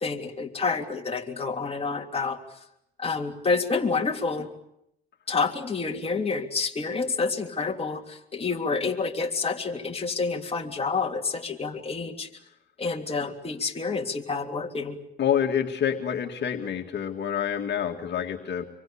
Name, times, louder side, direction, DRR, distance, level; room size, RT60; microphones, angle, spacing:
voice 1, 0.0-2.4 3.0-4.5 5.3-12.3 12.8-15.0, left 4 dB, 30° left, 2 dB, 3.3 m, -28 dB
voice 2, 15.2-18.6, left 8 dB, 60° left, 3 dB, 2.2 m, -27 dB
26.0 x 23.5 x 8.7 m, 0.79 s
cardioid pair, 90°, 20 cm